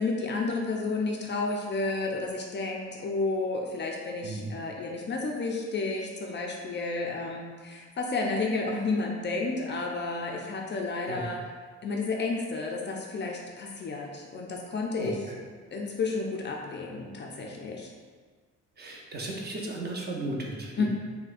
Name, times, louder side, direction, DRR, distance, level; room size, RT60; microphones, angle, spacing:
voice 1, 0.0-11.4 11.8-15.4 15.7-17.9 20.8-20.9, left 3 dB, 40° left, 0 dB, 0.4 m, -31 dB
voice 2, 18.8-20.9, right 2 dB, 35° right, -2 dB, 0.6 m, -35 dB
4.0 x 2.1 x 2.5 m, 1.5 s
cardioid pair, 90°, 30 cm